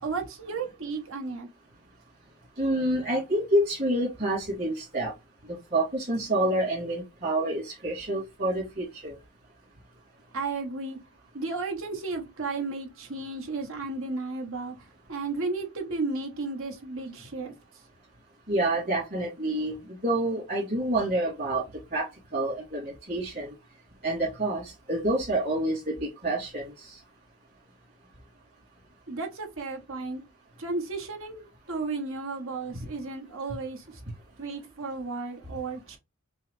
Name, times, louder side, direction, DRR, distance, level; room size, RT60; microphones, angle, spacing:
voice 1, 0.0-1.5 10.3-11.0 11.3-17.5 29.1-30.2 30.6-34.0 34.4-36.0, right 3 dB, 65° right, 1.1 m, -34 dB
voice 2, 2.6-5.1 5.5-9.2 18.5-21.6 21.9-23.5 24.0-27.0 32.7-32.9, right 1 dB, 45° right, 2.7 m, -28 dB
6.1 x 2.1 x 3.3 m
head